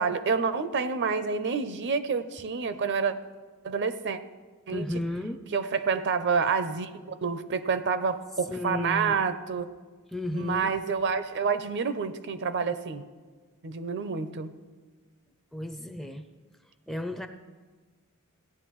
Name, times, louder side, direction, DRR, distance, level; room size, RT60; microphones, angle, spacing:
voice 1, 0.0-3.1 3.6-4.2 4.7-4.9 5.5-9.7 10.3-13.0 13.6-14.5, right 5 dB, 55° right, 11 dB, 0.5 m, -28 dB
voice 2, 4.7-5.4 8.5-9.2 10.1-10.7 15.5-16.2 16.9-17.3, left 1 dB, ahead, 7 dB, 0.4 m, -33 dB
16.5 x 9.8 x 3.1 m, 1.4 s
head